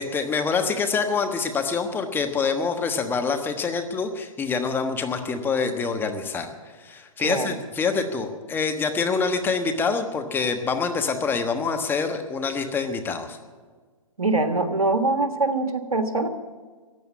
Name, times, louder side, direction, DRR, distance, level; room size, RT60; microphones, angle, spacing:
voice 1, 0.0-6.5 6.8-13.4, left 5 dB, 10° left, 6 dB, 1.2 m, -26 dB
voice 2, 7.2-7.5 14.2-16.3, right 2 dB, 90° right, 8 dB, 1.6 m, -23 dB
15.0 x 9.3 x 8.3 m, 1.5 s
hypercardioid pair, 130°, 18 cm